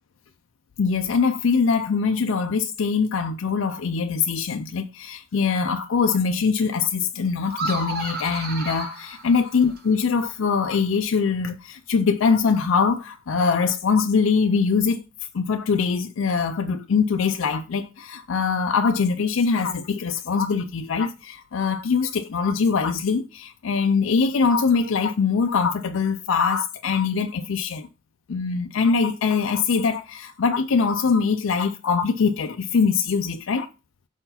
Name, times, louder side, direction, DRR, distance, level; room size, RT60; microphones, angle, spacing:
voice 1, 0.8-15.0 15.3-27.9 28.3-33.7, left 5 dB, 75° left, 0.4 m, -23 dB
sound 1, 7.5-10.0, right 3 dB, 50° right, 1.5 m, -32 dB
4.6 x 4.4 x 5.6 m
head